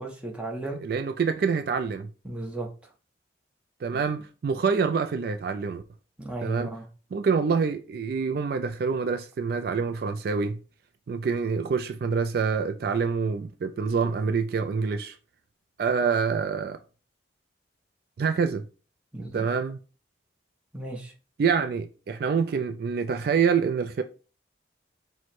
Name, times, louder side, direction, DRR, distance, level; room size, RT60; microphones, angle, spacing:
voice 1, 0.0-0.8 2.2-2.9 3.9-4.0 6.2-6.9 19.1-19.5 20.7-21.1, right 2 dB, 5° right, 0.8 m, -35 dB
voice 2, 0.8-2.1 3.8-5.8 6.4-6.7 7.1-10.6 11.1-15.2 15.8-16.8 18.2-18.6 19.3-19.8 21.4-24.0, right 5 dB, 55° right, 0.3 m, -26 dB
4.7 x 2.2 x 4.1 m
head